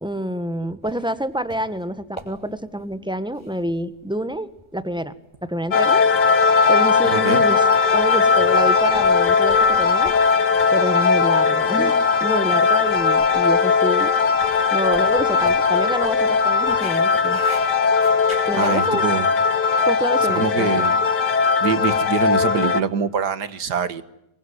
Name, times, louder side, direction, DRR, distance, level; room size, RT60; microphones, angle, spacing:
voice 1, 0.0-5.1 5.4-6.0 6.7-7.7 7.9-10.1 10.7-14.1 14.7-17.4 18.5-19.1 19.8-20.8, equal, 5° right, 12 dB, 1.4 m, -27 dB
sound 1, 0.8-18.8, equal, 15° left, 6.4 m, -43 dB
sound 2, 5.7-22.8, left 5 dB, 85° left, 1.9 m, -18 dB
voice 2, 7.0-7.4 18.5-19.3 20.3-21.0 21.6-24.0, right 6 dB, 75° right, 14 dB, 2.1 m, -24 dB
26.0 x 23.5 x 9.8 m, 0.84 s
omnidirectional pair, 1.8 m